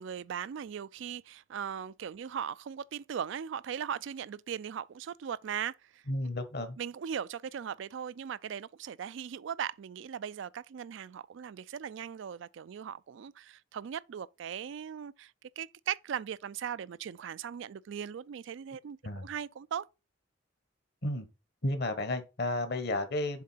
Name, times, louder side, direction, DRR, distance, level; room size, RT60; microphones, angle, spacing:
voice 1, 0.0-6.0 6.8-19.9, right 8 dB, 65° right, 0.3 m, -39 dB
voice 2, 6.1-6.8 19.0-19.3 21.0-21.3 21.6-23.4, left 2 dB, 55° left, 1.2 m, -32 dB
7.3 x 3.8 x 5.6 m
head